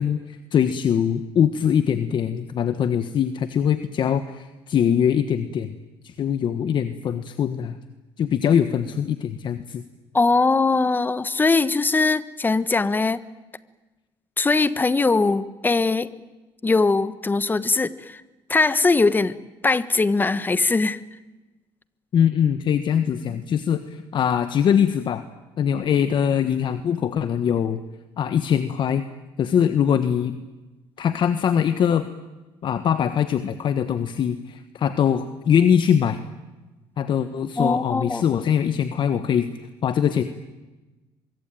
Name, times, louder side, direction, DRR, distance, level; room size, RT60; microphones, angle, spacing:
voice 1, 0.0-5.8 6.0-7.8 8.2-9.8 22.1-25.2 25.6-27.8 28.2-29.1 29.4-30.4 31.0-32.1 32.6-36.2 37.0-39.5 39.8-40.2, left 8 dB, 55° left, 11 dB, 1.3 m, -22 dB
voice 2, 10.1-13.2 14.4-16.1 16.6-18.2 18.5-19.4 19.6-21.0 37.6-38.2, left 3 dB, 20° left, 15 dB, 1.2 m, -21 dB
24.5 x 23.5 x 9.2 m, 1.1 s
cardioid pair, 105°, 10 cm